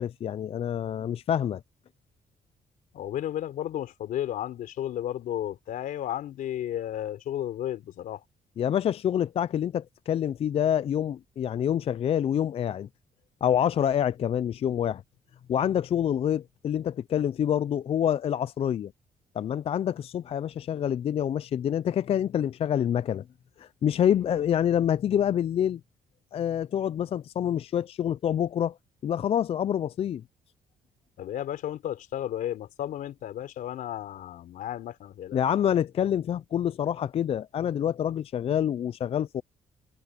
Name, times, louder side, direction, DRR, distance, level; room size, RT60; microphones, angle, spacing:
voice 1, 0.0-1.6 8.6-12.9 13.4-15.0 15.5-18.9 19.4-23.2 23.6-25.8 26.3-28.7 29.0-30.2 35.3-39.4, left 9 dB, 45° left, 0.4 m, -27 dB
voice 2, 2.9-8.2 31.2-35.4, left 11 dB, 80° left, 3.5 m, -33 dB
cardioid pair, 125°, 14 cm